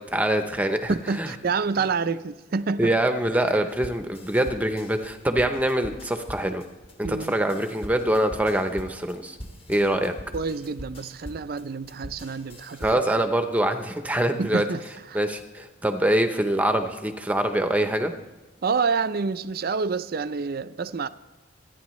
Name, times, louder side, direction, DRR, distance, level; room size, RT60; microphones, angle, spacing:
voice 1, 0.0-1.3 2.8-6.6 7.0-9.4 9.7-10.1 12.8-14.6 15.1-18.1, right 1 dB, 5° right, 0.7 m, -24 dB
voice 2, 0.9-2.9 7.0-7.3 9.9-12.9 14.4-14.8 15.1-15.2 18.6-21.1, right 5 dB, 45° right, 0.4 m, -28 dB
sound 1, 3.7-13.2, equal, 25° left, 1.2 m, -42 dB
26.0 x 9.8 x 3.1 m
head